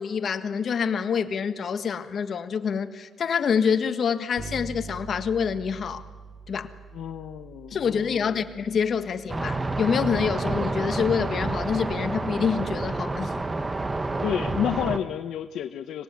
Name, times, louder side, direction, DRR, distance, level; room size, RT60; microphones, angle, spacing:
voice 1, 0.0-6.0 6.5-6.7 7.7-13.4, left 6 dB, 50° left, 1.5 m, -26 dB
Bass guitar, 4.4-14.0, right 4 dB, 55° right, 2.4 m, -46 dB
voice 2, 6.9-8.5 14.2-16.0, left 10 dB, 75° left, 0.9 m, -30 dB
sound 1, 9.3-15.0, right 2 dB, 20° right, 1.3 m, -29 dB
25.5 x 18.5 x 9.6 m
cardioid pair, 100°, 0 cm